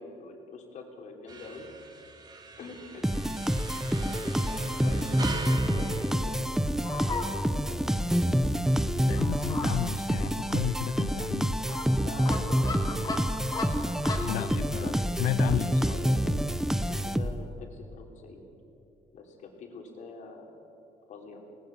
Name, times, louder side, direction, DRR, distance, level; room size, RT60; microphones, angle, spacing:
voice 1, 0.0-1.7 2.0-2.1 2.6-3.3 4.0-6.4 6.9-7.4 7.7-7.9 12.0-13.2 14.5-15.1 15.4-16.5 16.9-18.4 19.1-20.8 21.1-21.6, left 3 dB, 60° left, 2 dB, 3.5 m, -45 dB
sound 1, 1.3-7.1, right 2 dB, 30° right, 2.4 m, -41 dB
sound 2, 3.0-17.6, equal, 5° right, 0.7 m, -27 dB
Fowl, 5.4-14.4, left 3 dB, 30° left, 2.9 m, -39 dB
voice 2, 9.1-11.6 14.2-15.9, left 14 dB, 85° left, 13 dB, 0.5 m, -32 dB
20.0 x 19.0 x 7.3 m, 2.9 s
cardioid pair, 120°, 14 cm